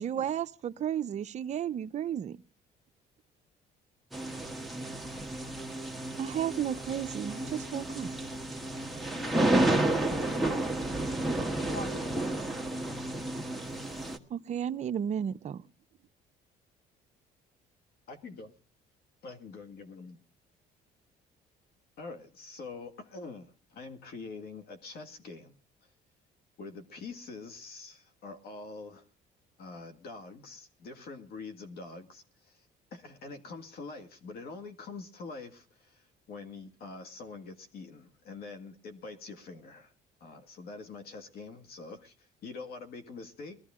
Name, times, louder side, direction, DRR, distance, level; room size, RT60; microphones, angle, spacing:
voice 1, 0.0-2.4 6.2-8.1 14.3-15.6, right 9 dB, 45° right, 0.6 m, -33 dB
sound 1, 4.1-14.2, right 1 dB, ahead, 1.3 m, -31 dB
voice 2, 9.1-9.7 10.1-10.8 11.7-12.3, left 1 dB, 40° left, 1.5 m, -42 dB
voice 3, 18.1-18.5 19.2-20.2 22.0-25.6 26.6-29.1 29.6-39.9 40.2-43.6, left 4 dB, 65° left, 2.0 m, -45 dB
21.0 x 13.5 x 3.7 m
cardioid pair, 110°, 17 cm